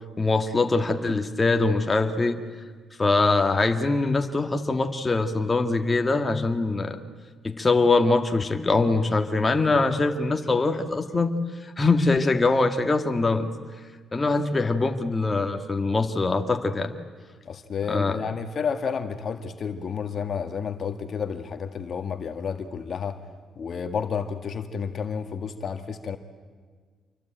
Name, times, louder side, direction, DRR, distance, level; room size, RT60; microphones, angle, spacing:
voice 1, 0.2-2.4 3.0-7.0 7.4-11.3 11.6-13.5 14.1-16.9 17.9-18.2, left 3 dB, 25° left, 5 dB, 1.8 m, -23 dB
voice 2, 17.4-23.2 23.6-26.2, left 6 dB, 50° left, 7 dB, 1.7 m, -31 dB
27.5 x 23.5 x 9.1 m, 1.5 s
cardioid pair, 90°, 0 cm